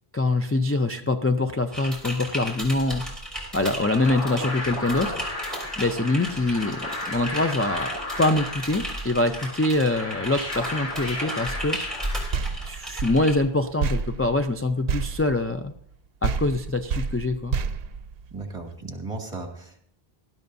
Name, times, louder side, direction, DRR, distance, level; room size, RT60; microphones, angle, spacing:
voice 1, 0.1-3.0 3.5-5.2 5.8-11.8 12.6-15.7 16.2-17.6, left 2 dB, 20° left, 4 dB, 0.3 m, -24 dB
Typing, 1.7-13.4, equal, ahead, 3.3 m, -35 dB
sound 1, 3.5-12.9, left 1 dB, 85° left, 2.5 m, -34 dB
sound 2, 12.3-16.0 16.2-18.7, right 5 dB, 70° right, 0.8 m, -30 dB
voice 2, 18.3-19.8, right 3 dB, 30° right, 3 dB, 1.9 m, -35 dB
19.0 x 12.0 x 2.7 m, 0.63 s
omnidirectional pair, 1.0 m